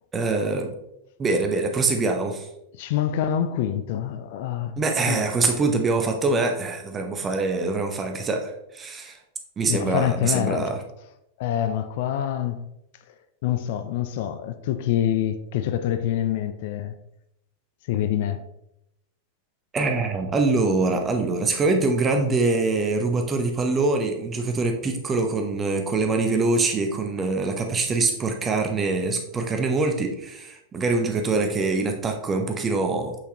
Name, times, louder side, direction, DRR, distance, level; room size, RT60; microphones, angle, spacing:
voice 1, 0.1-0.7 1.2-2.5 4.8-9.2 9.6-10.8 19.7-33.1, right 3 dB, 20° right, 0.9 m, -24 dB
voice 2, 2.8-4.8 5.1-5.3 9.6-10.6 11.4-12.6 13.4-16.9 17.9-18.4, left 10 dB, 50° left, 0.4 m, -26 dB
5.9 x 5.7 x 3.0 m
figure-of-eight pair, 90°, 0 cm